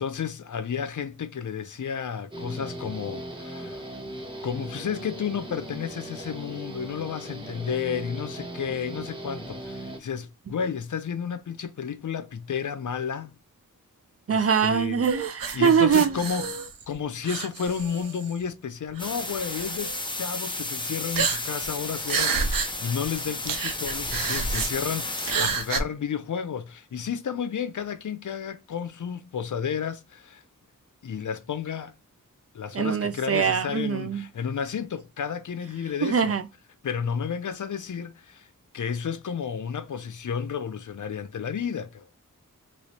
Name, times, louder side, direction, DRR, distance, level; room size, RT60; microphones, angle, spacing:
voice 1, 0.0-3.9 4.4-13.3 14.3-15.1 15.5-16.6 16.9-30.4 31.0-31.9 32.5-36.3 36.8-38.5 38.7-42.1, left 7 dB, 65° left, 0.5 m, -32 dB
Guitar, 2.3-10.0, right 1 dB, 15° right, 0.9 m, -38 dB
voice 2, 14.3-16.2 32.7-34.2 36.0-36.4, right 7 dB, 45° right, 0.4 m, -23 dB
sound 1, 15.0-16.9 17.2-18.4 19.0-19.1 19.5-20.0 21.1-21.7 22.0-22.7 23.0-23.1 23.4-24.7 25.2-25.8, right 5 dB, 90° right, 0.6 m, -29 dB
sound 2, 19.0-25.7, left 2 dB, 15° left, 0.6 m, -33 dB
3.0 x 3.0 x 2.8 m
wide cardioid pair, 85°, 33 cm